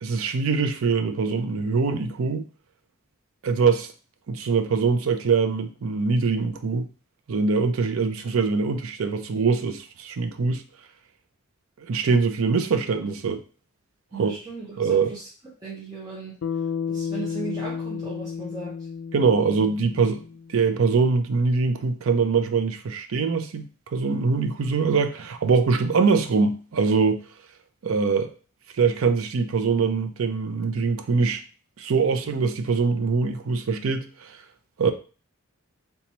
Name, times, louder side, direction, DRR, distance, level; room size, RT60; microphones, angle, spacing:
voice 1, 0.0-2.4 3.4-3.9 4.3-6.9 7.3-10.6 11.9-13.4 14.1-14.4 14.8-15.1 19.1-20.2 20.5-27.2 27.8-28.3 28.8-31.4 31.8-34.4 34.8-34.9, right 4 dB, 80° right, 0.5 m, -23 dB
voice 2, 14.1-15.3 15.6-16.4 16.9-18.7, right 4 dB, 20° right, 0.6 m, -37 dB
Bass guitar, 16.4-20.8, left 6 dB, 70° left, 0.3 m, -32 dB
2.9 x 2.3 x 4.0 m
head